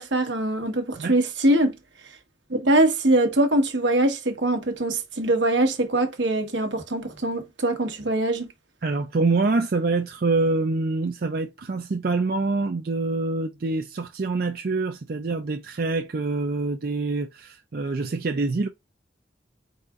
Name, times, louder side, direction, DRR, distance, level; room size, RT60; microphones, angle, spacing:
voice 1, 0.0-1.8 2.5-8.5, right 1 dB, 75° right, 1.3 m, -22 dB
voice 2, 8.8-18.7, right 3 dB, 50° right, 0.4 m, -25 dB
4.7 x 4.1 x 2.5 m
head